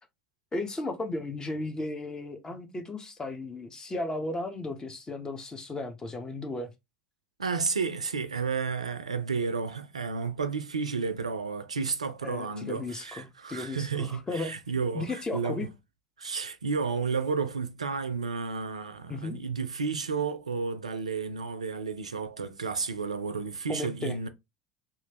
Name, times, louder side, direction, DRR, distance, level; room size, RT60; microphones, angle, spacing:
voice 1, 0.5-6.7 12.2-14.5 14.9-15.7 19.1-19.4 23.7-24.3, left 2 dB, 20° left, 0.8 m, -35 dB
voice 2, 7.4-15.7 16.2-24.3, right 5 dB, 90° right, 0.3 m, -32 dB
3.0 x 2.4 x 2.8 m
hypercardioid pair, 70°, 3 cm